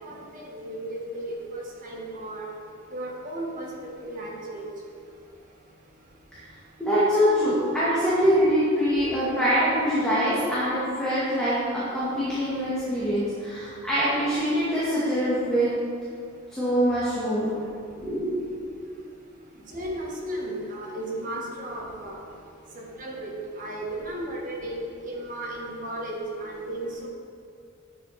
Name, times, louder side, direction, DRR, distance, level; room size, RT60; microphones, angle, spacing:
voice 1, 0.0-2.4 2.9-3.7 4.0-4.7 19.7-22.2 23.0-23.3 23.6-27.1, right 1 dB, 40° right, -3 dB, 1.9 m, -35 dB
voice 2, 6.8-15.7 16.5-17.5 18.0-18.3 20.2-20.3, equal, 5° left, -11 dB, 2.3 m, -24 dB
10.5 x 8.1 x 4.4 m, 2.3 s
head